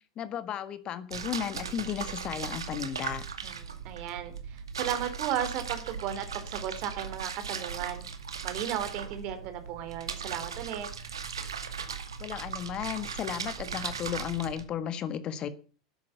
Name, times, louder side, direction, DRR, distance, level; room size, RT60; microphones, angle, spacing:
voice 1, 0.2-3.2 12.2-15.5, left 9 dB, 40° left, 12 dB, 1.6 m, -34 dB
sound 1, 1.1-14.6, right 6 dB, 80° right, 2.1 m, -38 dB
voice 2, 3.8-8.0 8.4-10.9, right 10 dB, 50° right, 9 dB, 3.3 m, -35 dB
13.5 x 10.5 x 6.9 m, 0.39 s
figure-of-eight pair, 85°, 2 cm